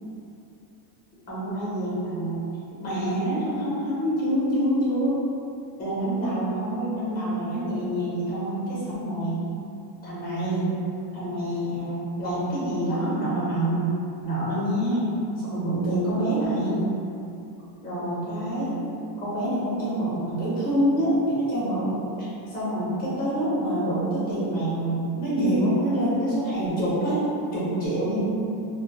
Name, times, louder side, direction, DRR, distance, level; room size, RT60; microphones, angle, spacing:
voice 1, 1.3-2.4 2.8-5.1 5.8-9.3 10.0-10.7 11.1-13.9 14.2-15.1 15.4-16.8 17.8-18.7 19.2-22.0 22.5-27.2 27.5-28.2, right 1 dB, 20° left, -8 dB, 0.7 m, -26 dB
2.3 x 2.1 x 2.8 m, 2.7 s
cardioid pair, 160°, 49 cm